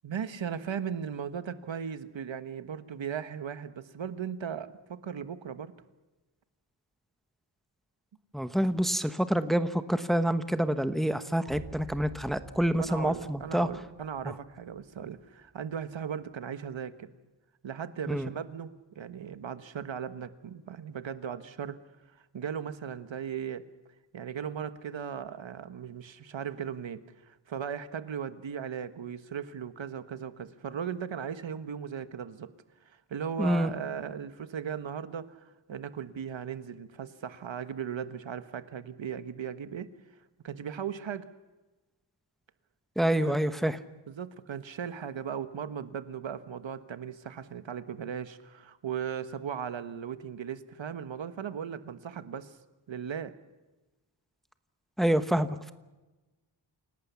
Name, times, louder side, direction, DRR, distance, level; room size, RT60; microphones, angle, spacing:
voice 1, 0.0-5.7 12.7-17.1 17.6-21.8 22.1-23.6 24.1-32.5 32.8-39.9 40.4-41.3 43.2-43.4 44.1-52.6 52.9-53.3, right 7 dB, 90° right, 11 dB, 1.5 m, -37 dB
voice 2, 8.3-13.7 14.2-14.3 18.1-18.3 33.4-33.7 43.0-43.8 55.0-55.7, equal, ahead, 10 dB, 1.0 m, -27 dB
sound 1, 11.5-15.5, right 3 dB, 45° right, 3.6 m, -49 dB
29.0 x 18.0 x 7.1 m, 1.1 s
wide cardioid pair, 160°, 45 cm